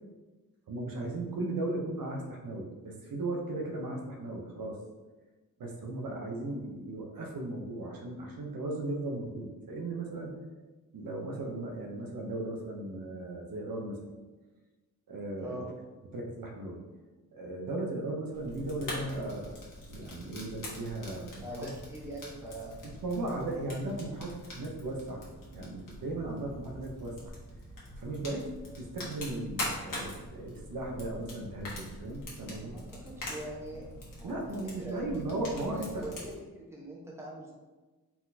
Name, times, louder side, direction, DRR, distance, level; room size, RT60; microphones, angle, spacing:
voice 1, 0.7-4.8 5.6-10.4 10.9-14.0 15.1-15.6 16.1-16.8 17.3-19.6 19.9-21.7 22.8-25.2 25.5-27.3 28.0-32.8 34.2-36.0, right 2 dB, 75° right, 0 dB, 0.8 m, -37 dB
Fire, 18.3-36.3, left 1 dB, 65° left, 1.3 m, -44 dB
voice 2, 21.4-22.8 32.5-34.5 34.8-35.0 35.7-37.5, right 1 dB, 10° right, -4 dB, 1.0 m, -43 dB
4.3 x 4.0 x 2.7 m, 1.2 s
wide cardioid pair, 105°, 34 cm